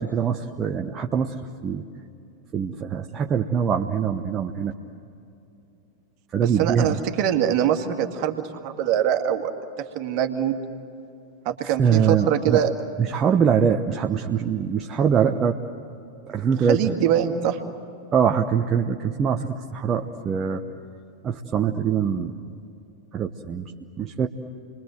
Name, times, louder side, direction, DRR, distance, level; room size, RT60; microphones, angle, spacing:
voice 1, 0.0-1.3 1.6-1.8 2.5-4.7 6.3-7.0 11.6-12.6 13.0-15.6 16.3-16.9 18.1-20.6 21.2-22.4 23.1-23.7 24.0-24.3, right 7 dB, 25° right, 2 dB, 1.0 m, -23 dB
voice 2, 6.4-9.5 10.0-10.6 11.5-12.7 16.7-17.6, right 10 dB, 45° right, 5 dB, 2.1 m, -23 dB
30.0 x 22.5 x 7.9 m, 2.7 s
figure-of-eight pair, 90°, 0 cm